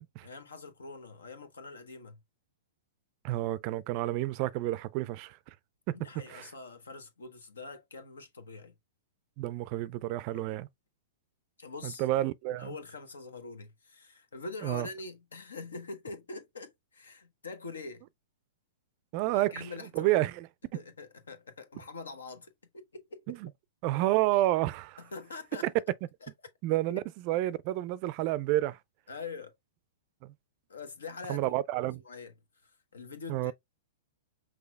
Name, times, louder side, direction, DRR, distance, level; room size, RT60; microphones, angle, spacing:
voice 1, 0.2-2.2 5.9-8.7 10.3-10.5 11.6-12.0 12.6-18.0 19.2-20.2 20.7-23.4 25.0-25.7 26.2-26.3 26.9-27.0 29.1-29.5 30.7-31.5 31.8-32.3 32.6-33.5, left 3 dB, 80° left, 0.9 m, -44 dB
voice 2, 3.2-5.5 5.9-6.5 9.4-10.7 11.8-12.7 14.6-14.9 19.1-19.5 20.0-20.5 20.7-20.8 23.3-23.5 23.8-25.0 25.6-25.7 26.6-28.8 30.2-30.3 31.3-32.0 33.3-33.5, right 16 dB, 45° right, 0.4 m, -30 dB
5.8 x 3.2 x 2.3 m
hypercardioid pair, 110°, 0 cm